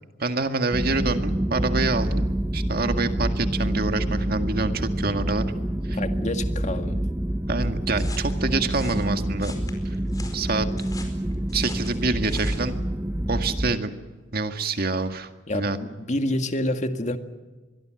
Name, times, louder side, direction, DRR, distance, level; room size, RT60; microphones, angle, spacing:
voice 1, 0.2-5.4 5.9-6.0 7.5-9.5 10.3-10.7 11.5-12.8 13.3-13.9 14.3-15.8, right 3 dB, 55° right, 7 dB, 2.0 m, -26 dB
sound 1, 0.7-13.8, right 1 dB, 10° right, 0.7 m, -27 dB
voice 2, 5.9-7.1 15.5-17.2, left 1 dB, 40° left, 7 dB, 1.9 m, -28 dB
sound 2, 8.0-12.7, left 3 dB, 20° left, 4.8 m, -44 dB
25.0 x 22.0 x 7.8 m, 1.3 s
head